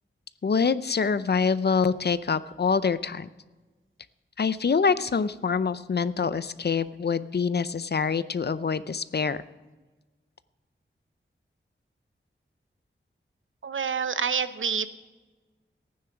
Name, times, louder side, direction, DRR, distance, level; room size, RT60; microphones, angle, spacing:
voice 1, 0.4-3.3 4.4-9.4, left 5 dB, 55° left, 15 dB, 0.6 m, -25 dB
voice 2, 13.6-14.9, right 6 dB, 75° right, 12 dB, 0.8 m, -27 dB
15.0 x 9.6 x 5.9 m, 1.2 s
wide cardioid pair, 95°, 20 cm